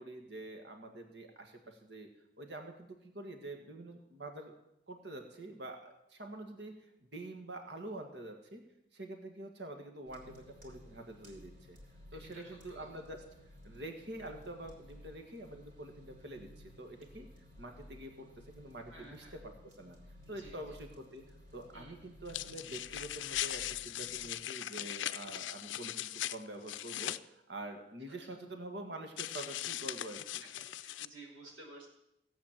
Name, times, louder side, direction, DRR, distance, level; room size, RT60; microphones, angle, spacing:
voice 1, 0.0-2.1 2.4-4.6 4.9-8.6 8.9-11.8 12.1-13.2 13.6-16.5 16.8-17.3 17.6-20.0 20.3-21.2 21.5-30.4, right 1 dB, 65° right, 4 dB, 1.8 m, -46 dB
sound 1, 10.1-24.3, left 1 dB, 45° right, 3.8 m, -56 dB
voice 2, 12.1-13.0 18.9-19.4 20.4-20.6 21.7-22.0 28.1-28.2 30.4-30.5 30.8-31.9, right 2 dB, 85° right, -1 dB, 5.2 m, -53 dB
sound 2, 22.3-27.2 29.2-31.1, left 13 dB, 80° left, 0.5 m, -39 dB
17.0 x 8.4 x 7.5 m, 0.81 s
head